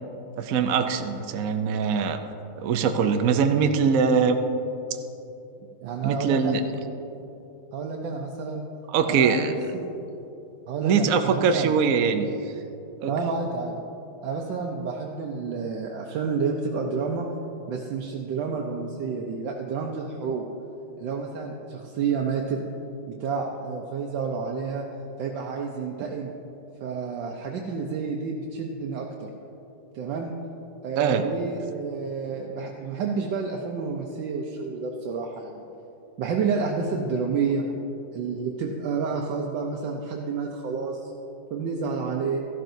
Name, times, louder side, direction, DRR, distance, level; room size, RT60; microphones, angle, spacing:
voice 1, 0.4-2.2 2.6-4.4 6.0-6.6 8.9-9.5 10.8-12.3 13.0-13.1 31.0-31.2, right 6 dB, 65° right, 7 dB, 0.9 m, -22 dB
voice 2, 5.8-6.6 7.7-8.6 9.1-9.9 10.7-11.8 13.1-13.8 14.2-17.3 17.7-20.5 21.0-22.6 23.1-24.8 25.2-26.3 26.8-29.3 29.9-30.3 30.8-35.6 36.2-37.7 38.1-41.1 41.5-42.4, right 5 dB, 80° right, 0 dB, 1.4 m, -29 dB
14.0 x 12.0 x 2.7 m, 2.9 s
omnidirectional pair, 2.0 m